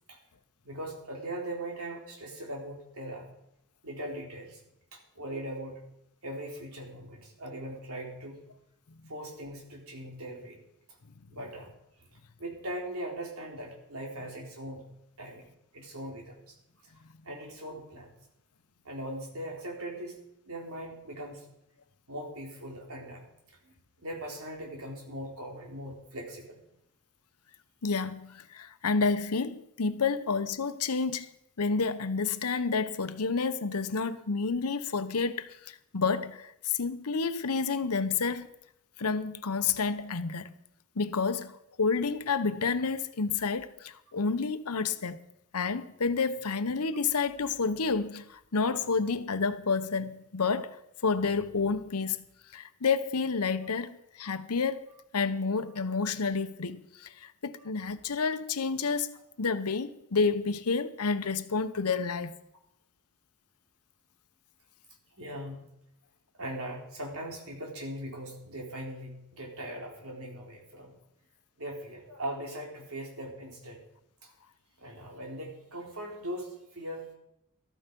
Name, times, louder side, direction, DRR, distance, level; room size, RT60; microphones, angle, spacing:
voice 1, 0.6-3.3 3.8-4.6 4.9-5.8 6.2-8.4 9.1-10.6 11.3-11.7 12.4-14.9 15.2-15.5 15.7-16.6 17.2-18.1 18.8-20.1 20.5-21.4 22.1-23.3 23.6-23.7 24.0-26.6 65.2-65.6 66.4-70.9 71.6-73.8 74.8-77.1, right 1 dB, 70° right, 3.8 m, -40 dB
voice 2, 27.8-31.3 31.6-38.5 39.0-40.5 41.0-45.2 45.5-50.8 51.0-52.3 52.5-54.9 55.1-59.1 59.4-62.4, left 4 dB, 85° left, 0.9 m, -29 dB
13.5 x 13.5 x 5.3 m
head